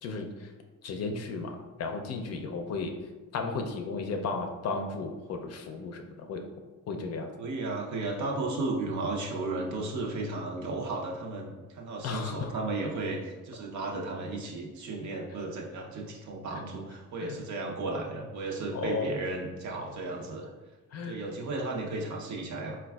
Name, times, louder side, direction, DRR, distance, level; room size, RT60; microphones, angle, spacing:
voice 1, 0.0-0.5 0.8-3.0 3.3-6.4 6.9-7.3 12.0-12.5 16.5-16.6 17.2-17.4 18.7-19.1 20.9-21.2, left 4 dB, 55° left, 5 dB, 0.5 m, -34 dB
voice 2, 7.4-20.5 21.0-22.8, right 2 dB, 70° right, -1 dB, 0.7 m, -34 dB
4.0 x 2.3 x 2.3 m, 1.2 s
cardioid pair, 90°, 30 cm